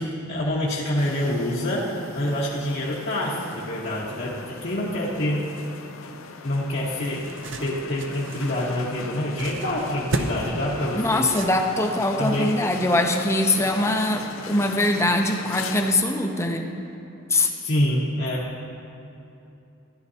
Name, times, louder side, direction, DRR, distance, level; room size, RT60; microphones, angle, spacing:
voice 1, 0.0-5.4 6.4-7.2 7.6-11.2 12.2-12.5 17.6-18.5, left 1 dB, 55° left, -6 dB, 1.2 m, -26 dB
sound 1, 1.0-15.9, left 4 dB, 85° left, 0.6 m, -39 dB
sound 2, 6.6-12.1, right 2 dB, 65° right, 0.6 m, -34 dB
voice 2, 11.0-16.7 17.3-17.5, left 1 dB, 15° left, 3 dB, 0.6 m, -22 dB
14.0 x 11.5 x 2.8 m, 2.9 s
head